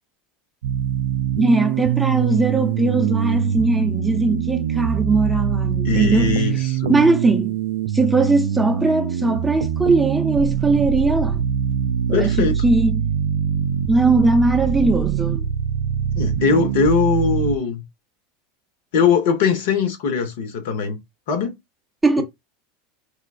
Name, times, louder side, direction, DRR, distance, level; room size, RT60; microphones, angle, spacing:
sound 1, 0.6-17.6, right 9 dB, 75° right, 0.3 m, -23 dB
voice 1, 1.4-6.4 6.9-7.5 7.9-11.4 12.1-13.1 13.9-15.5 22.0-22.2, right 3 dB, 5° right, 0.8 m, -19 dB
voice 2, 5.8-7.0 12.1-12.6 16.1-17.8 18.9-21.0 21.3-21.6, left 5 dB, 65° left, 1.1 m, -20 dB
4.8 x 2.3 x 2.5 m
hypercardioid pair, 90°, 0 cm